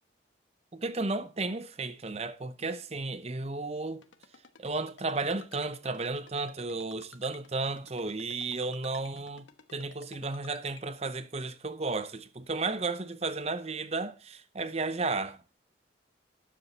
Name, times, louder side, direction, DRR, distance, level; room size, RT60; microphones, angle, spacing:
voice 1, 0.7-4.1 4.6-9.5 9.7-15.4, right 3 dB, 35° right, 0.7 m, -33 dB
Ringtone, 4.0-10.8, left 5 dB, 90° left, 1.1 m, -53 dB
12.5 x 7.6 x 4.1 m
head